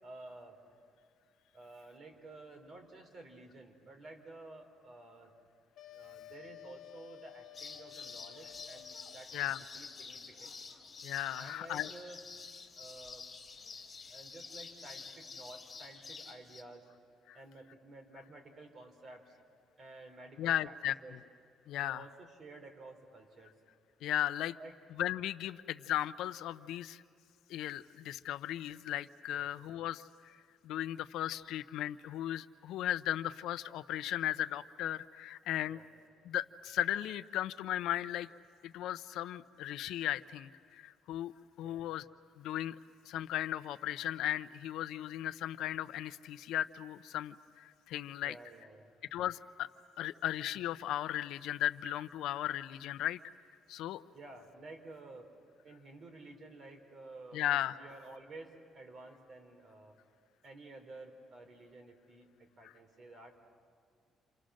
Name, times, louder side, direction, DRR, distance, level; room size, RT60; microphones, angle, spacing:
voice 1, 0.0-0.6 1.5-5.3 5.9-10.5 11.3-12.2 12.8-13.2 14.1-16.9 17.3-19.4 19.8-20.7 21.0-21.2 21.8-23.5 24.5-24.8 29.3-29.5 35.7-35.9 41.6-41.8 48.2-48.9 54.1-55.3 55.6-57.4 57.7-60.0 60.4-63.4, right 2 dB, 40° right, 4 dB, 4.0 m, -52 dB
sound 1, 5.8-9.2, left 14 dB, 65° left, 1.2 m, -53 dB
sound 2, 7.5-16.6, left 5 dB, 30° left, 3.2 m, -49 dB
voice 2, 11.0-11.9 17.3-17.4 20.4-21.2 21.7-22.0 24.0-24.6 25.0-27.0 27.5-30.3 30.6-35.8 36.3-38.3 38.6-41.3 41.6-42.0 42.4-42.8 43.1-48.3 49.1-49.7 50.0-53.2 53.7-54.0 57.3-57.8, left 12 dB, 80° left, 12 dB, 0.6 m, -36 dB
29.0 x 27.0 x 6.4 m, 2.3 s
cardioid pair, 125°, 0 cm